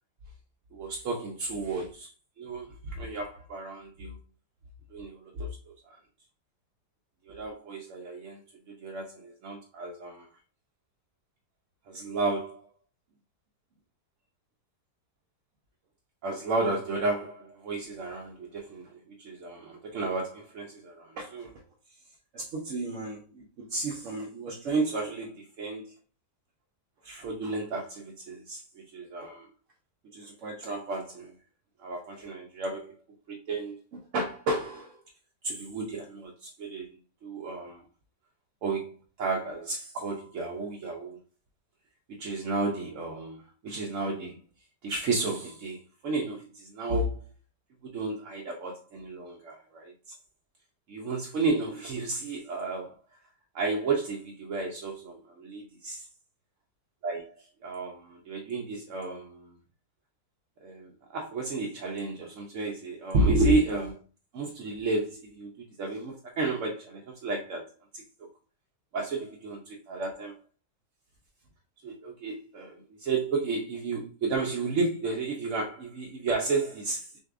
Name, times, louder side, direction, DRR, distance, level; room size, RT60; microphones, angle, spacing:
voice 1, 0.7-2.1 2.4-4.2 4.9-6.0 7.3-8.4 8.7-10.3 11.9-12.7 16.2-21.5 22.3-25.9 27.0-29.5 30.1-31.3 31.8-32.9 33.3-35.0 35.4-37.8 38.6-41.2 42.1-44.4 44.8-47.2 47.8-50.1 50.9-52.9 53.5-56.1 57.0-59.6 60.6-64.0 64.3-68.0 68.9-70.4 71.8-77.1, right 3 dB, 60° right, 0.8 m, -32 dB
6.2 x 2.7 x 2.4 m
omnidirectional pair, 1.9 m